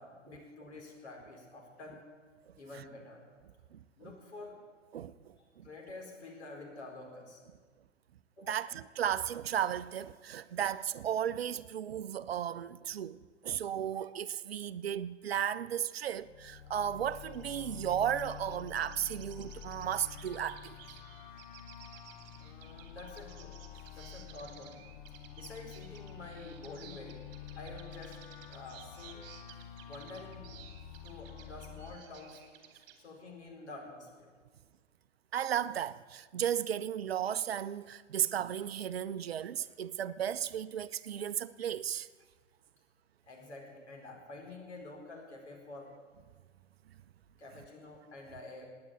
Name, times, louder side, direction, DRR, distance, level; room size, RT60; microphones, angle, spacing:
voice 1, 0.0-2.0 2.6-3.2 4.0-4.6 5.4-7.4 8.4-8.6 22.4-23.5 23.9-24.8 25.3-27.2 27.6-28.2 28.5-29.2 29.9-30.5 31.0-32.4 33.0-34.3 43.3-45.9 47.4-48.7, left 2 dB, 65° left, 4.8 m, -48 dB
voice 2, 4.9-5.7 8.5-20.8 35.3-42.1, right 10 dB, 55° right, 0.6 m, -35 dB
sound 1, 16.1-32.0, left 10 dB, 40° left, 0.8 m, -49 dB
sound 2, 17.0-33.0, right 9 dB, 30° right, 2.4 m, -56 dB
17.5 x 9.6 x 8.6 m
figure-of-eight pair, 110°, 37 cm